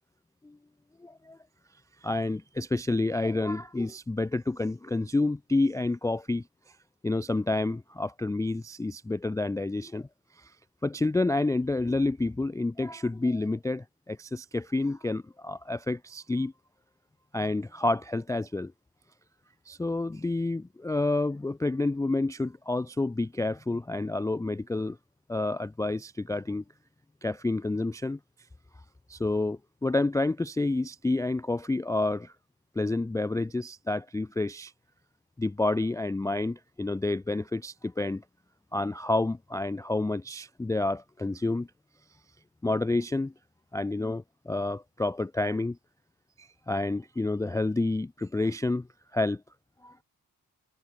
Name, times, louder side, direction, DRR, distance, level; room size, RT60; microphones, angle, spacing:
voice 1, 1.0-1.4 2.0-6.4 7.0-10.1 10.8-16.5 17.3-18.7 19.7-25.0 25.3-26.6 27.2-28.2 29.1-32.3 32.8-34.7 35.4-38.2 38.7-41.7 42.6-43.3 43.7-45.8 46.4-48.8 49.1-49.4 49.8-49.9, left 2 dB, 10° left, 0.3 m, -29 dB
cardioid pair, 75°, 40 cm